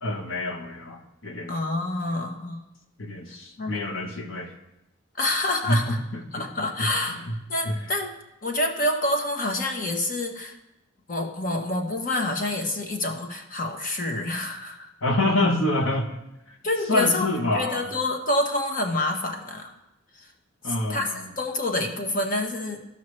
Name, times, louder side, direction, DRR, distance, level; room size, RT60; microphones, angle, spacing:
voice 1, 0.0-1.5 3.0-4.5 5.7-6.5 6.8-7.3 7.6-7.8 15.0-16.1 16.5-16.6 16.9-17.9 20.6-21.3, left 1 dB, 75° left, 3 dB, 1.1 m, -27 dB
voice 2, 1.5-2.6 3.6-3.7 5.2-6.0 6.3-7.2 7.5-8.1 8.4-10.6 11.1-14.9 16.6-19.7 20.2-20.3 20.9-21.1 21.4-22.8, left 2 dB, 40° left, 3 dB, 1.1 m, -27 dB
14.5 x 5.6 x 3.2 m, 0.90 s
head